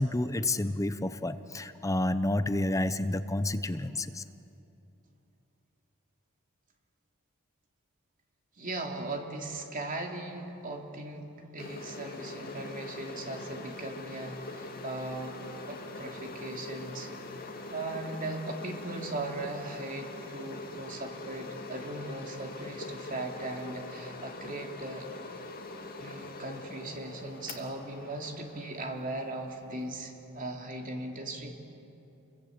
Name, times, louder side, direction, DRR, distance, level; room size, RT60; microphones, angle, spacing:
voice 1, 0.0-4.2, left 1 dB, 15° left, 11 dB, 0.7 m, -29 dB
voice 2, 8.6-15.4 15.7-17.1 17.7-25.1 26.0-31.5, right 2 dB, 40° right, 2 dB, 2.9 m, -38 dB
sound 1, 11.6-30.0, left 2 dB, 40° left, 2.5 m, -43 dB
28.5 x 22.5 x 8.7 m, 2.8 s
head